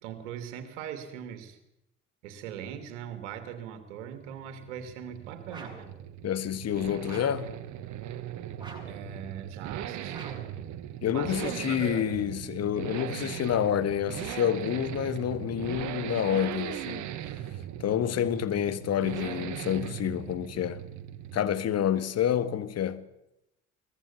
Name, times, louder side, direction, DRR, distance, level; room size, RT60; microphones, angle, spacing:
voice 1, 0.0-1.6 2.2-5.9 8.9-10.4 11.1-12.1, right 9 dB, 65° right, 2.7 m, -40 dB
sound 1, 4.1-22.1, right 11 dB, 50° right, 1.4 m, -39 dB
sound 2, 5.5-5.9 7.0-7.5 8.6-9.0 10.1-10.6, right 2 dB, 10° right, 7.6 m, -46 dB
voice 2, 6.2-7.5 11.0-17.1 17.8-20.8 21.3-23.1, left 10 dB, 40° left, 1.6 m, -28 dB
22.5 x 19.5 x 7.1 m
figure-of-eight pair, 50°, 37 cm